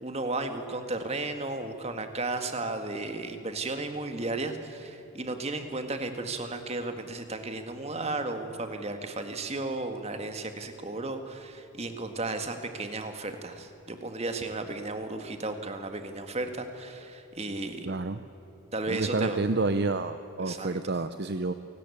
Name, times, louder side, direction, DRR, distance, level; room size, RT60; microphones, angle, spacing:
voice 1, 0.0-17.9 18.7-19.4 20.4-20.8, right 2 dB, 30° right, 7 dB, 1.8 m, -34 dB
voice 2, 17.9-18.2 18.9-21.5, right 3 dB, 45° right, 10 dB, 0.7 m, -29 dB
28.0 x 18.5 x 8.6 m, 3.0 s
head